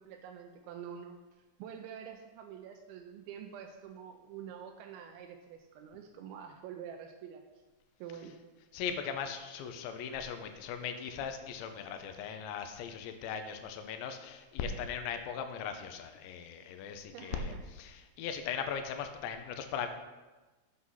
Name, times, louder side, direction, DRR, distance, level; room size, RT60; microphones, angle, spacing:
voice 1, 0.0-7.4 8.0-8.4 17.1-17.6, right 8 dB, 85° right, 4 dB, 2.1 m, -47 dB
voice 2, 8.7-17.5 17.8-19.9, left 7 dB, 85° left, 7 dB, 3.0 m, -39 dB
8.3 x 6.4 x 5.6 m, 1.2 s
omnidirectional pair, 5.1 m